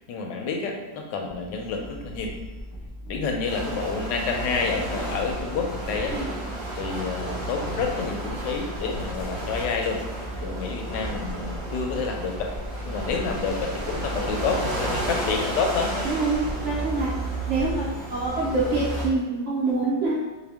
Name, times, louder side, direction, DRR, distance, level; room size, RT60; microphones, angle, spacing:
voice 1, 0.0-2.3 3.1-6.1 6.8-10.0 10.4-12.5 12.8-15.9, left 4 dB, 80° left, 2 dB, 1.2 m, -29 dB
sound 1, 1.3-19.1, right 1 dB, 40° left, 0.7 m, -35 dB
sound 2, 3.5-19.0, right 1 dB, 50° right, 1.9 m, -34 dB
voice 2, 16.0-17.1 17.5-20.3, right 3 dB, 75° right, -6 dB, 0.6 m, -26 dB
4.4 x 2.2 x 3.4 m, 1.2 s
omnidirectional pair, 2.0 m